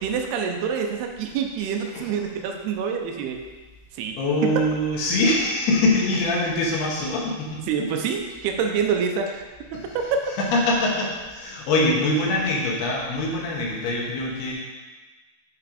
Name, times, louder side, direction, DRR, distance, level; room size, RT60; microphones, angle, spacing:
voice 1, 0.0-3.4 4.0-4.2 4.4-4.6 7.7-9.4 9.7-10.0, right 7 dB, 90° right, 3 dB, 2.7 m, -26 dB
voice 2, 4.2-7.6 10.4-14.5, left 2 dB, 75° left, -3 dB, 3.5 m, -23 dB
9.3 x 4.8 x 5.1 m, 1.3 s
omnidirectional pair, 4.6 m